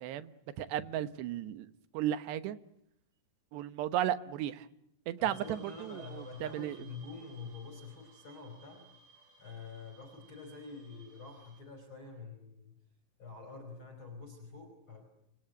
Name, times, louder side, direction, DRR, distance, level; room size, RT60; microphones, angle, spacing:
voice 1, 0.0-1.7 1.9-2.6 3.5-4.7 5.1-6.8, right 11 dB, 75° right, 3.3 m, -35 dB
voice 2, 5.2-8.9 9.4-12.7 13.2-15.1, left 4 dB, 30° left, 5.2 m, -47 dB
sound 1, 5.3-11.6, right 4 dB, 40° right, 8.4 m, -60 dB
29.5 x 24.5 x 8.0 m
omnidirectional pair, 5.0 m